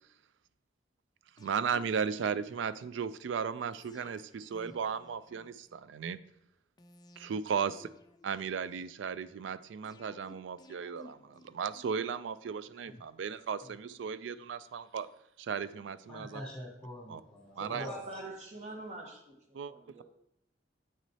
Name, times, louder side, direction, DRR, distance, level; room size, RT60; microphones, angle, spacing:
sound 1, 1.4-2.9 3.7-5.9 6.8-9.0 9.8-12.2 12.9-14.5 14.8-14.9, left 2 dB, 20° left, 0.4 m, -58 dB
voice 1, 1.4-6.2 7.2-7.9 8.2-15.1 15.4-16.4 17.1-17.2 17.6-17.9 19.5-19.7, right 6 dB, 85° right, 15 dB, 0.3 m, -35 dB
voice 2, 16.1-18.3, equal, 5° left, -5 dB, 2.7 m, -44 dB
voice 3, 17.5-20.0, right 1 dB, 40° right, 1 dB, 1.1 m, -45 dB
8.2 x 6.0 x 2.8 m, 0.80 s
head